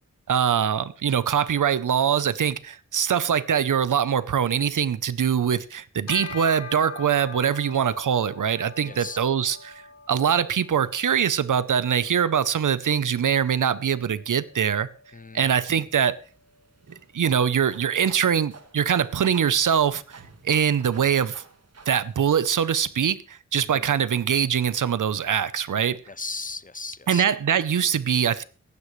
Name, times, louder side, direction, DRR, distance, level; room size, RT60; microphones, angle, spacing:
voice 1, 0.3-9.8 10.1-14.9 15.3-16.2 17.1-21.4 21.9-26.0 27.1-28.4, right 8 dB, 90° right, 0.7 m, -23 dB
Bell, 6.1-15.8, left 4 dB, 55° left, 1.0 m, -43 dB
voice 2, 8.8-9.2 15.1-15.6 23.6-23.9 26.1-27.2, left 4 dB, 30° left, 0.5 m, -36 dB
sound 1, 15.7-22.9, right 4 dB, 55° right, 1.6 m, -49 dB
16.5 x 15.0 x 3.2 m
wide cardioid pair, 80°, 30 cm